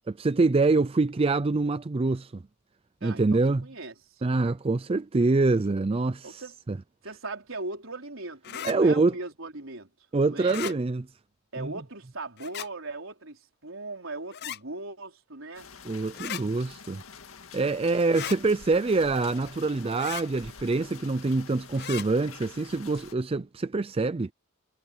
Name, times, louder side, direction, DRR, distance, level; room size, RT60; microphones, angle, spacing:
voice 1, 0.1-2.4 3.0-3.6 4.2-6.4 6.7-6.8 8.6-9.1 10.1-11.0 11.6-11.7 15.8-17.0 17.5-24.3, right 3 dB, 30° right, 0.4 m, -25 dB
voice 2, 3.0-4.2 6.2-6.5 7.0-9.9 10.3-10.7 11.5-15.7 18.2-18.4, right 2 dB, 70° right, 4.8 m, -39 dB
sound 1, 8.4-8.8 10.4-10.8 12.4-12.7 14.3-14.6 16.1-16.4 18.1-18.4 20.0-20.3 21.8-22.1, left 11 dB, 50° left, 0.5 m, -36 dB
sound 2, 15.5-23.1, left 6 dB, 85° left, 2.0 m, -47 dB
head